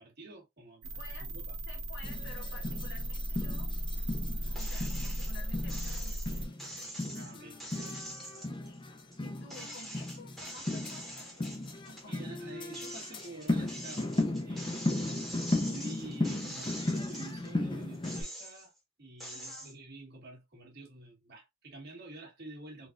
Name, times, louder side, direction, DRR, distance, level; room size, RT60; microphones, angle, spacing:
voice 1, 0.0-1.6 7.1-7.6 12.1-15.0 15.7-18.7 19.0-22.9, right 2 dB, 50° right, 1.4 m, -48 dB
voice 2, 0.8-3.7 4.6-6.4 8.7-8.8 9.2-11.5 11.9-12.3 15.1-15.4 19.3-19.8, left 3 dB, 60° left, 1.0 m, -52 dB
sound 1, 0.8-6.5, equal, 70° right, 0.8 m, -36 dB
sound 2, 2.0-18.2, left 2 dB, 25° left, 0.5 m, -36 dB
sound 3, 4.5-5.3 5.7-9.2 9.5-12.1 12.5-17.5 17.9-18.8 19.2-19.7, equal, ahead, 0.9 m, -45 dB
4.0 x 2.4 x 2.4 m
head